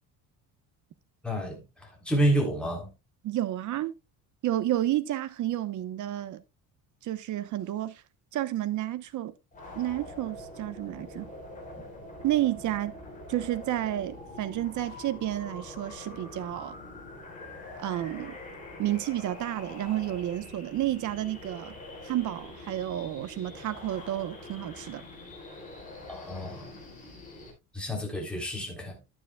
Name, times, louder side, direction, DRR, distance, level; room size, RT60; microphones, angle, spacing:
voice 1, 1.2-2.9 26.1-26.8 27.7-29.0, right 1 dB, 5° left, 3.5 m, -29 dB
voice 2, 3.2-3.9 4.4-6.4 7.0-8.0 8.3-9.3 9.7-11.3 12.2-12.9 13.3-16.7 17.8-18.3 18.8-21.8 22.0-25.0, right 13 dB, 50° right, 1.0 m, -31 dB
sound 1, 9.5-27.5, left 2 dB, 20° left, 4.4 m, -45 dB
11.5 x 9.6 x 2.3 m
cardioid pair, 140°, 37 cm